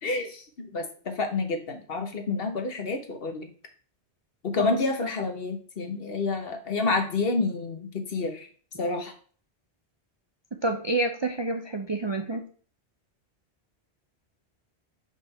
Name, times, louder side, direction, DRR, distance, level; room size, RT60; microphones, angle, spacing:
voice 1, 0.0-3.5 4.4-8.5 8.8-9.1, left 3 dB, 60° left, 5 dB, 1.2 m, -29 dB
voice 2, 10.6-12.4, right 2 dB, 35° right, 4 dB, 0.4 m, -28 dB
5.1 x 3.5 x 5.4 m, 0.43 s
omnidirectional pair, 1.1 m